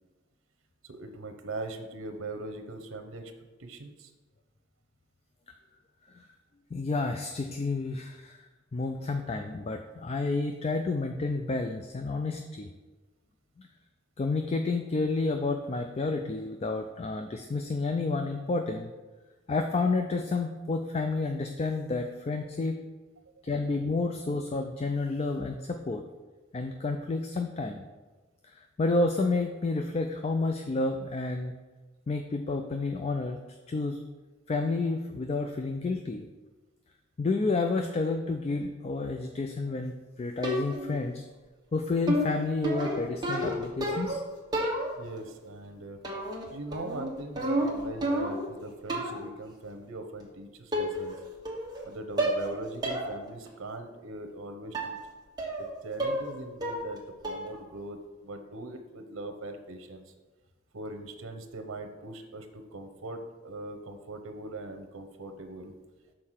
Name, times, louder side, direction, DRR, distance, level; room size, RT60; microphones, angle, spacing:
voice 1, 0.8-3.3 3.6-4.1 45.0-46.0 46.5-51.2 51.8-55.0 55.6-60.1 60.7-65.7, right 2 dB, 90° right, 7 dB, 0.8 m, -41 dB
voice 2, 6.7-12.7 13.6-13.7 14.2-18.9 19.5-22.8 23.4-26.0 26.5-27.8 28.4-31.6 32.1-33.4 33.7-34.0 34.5-36.3 37.2-41.3 41.7-44.2, left 3 dB, 30° left, 5 dB, 0.4 m, -30 dB
sound 1, 40.4-41.0 42.1-44.2 44.5-45.2 46.0-46.5 46.7-48.5 48.9-49.3 50.2-50.3 50.7-51.2 51.5-51.9 52.2-52.5 52.8-53.1 53.5-53.6 54.7-55.0 55.4-55.7 56.0-56.3 56.6-57.0 57.2-57.6, right 1 dB, 20° right, 1.2 m, -30 dB
6.5 x 4.4 x 5.8 m, 1.2 s
head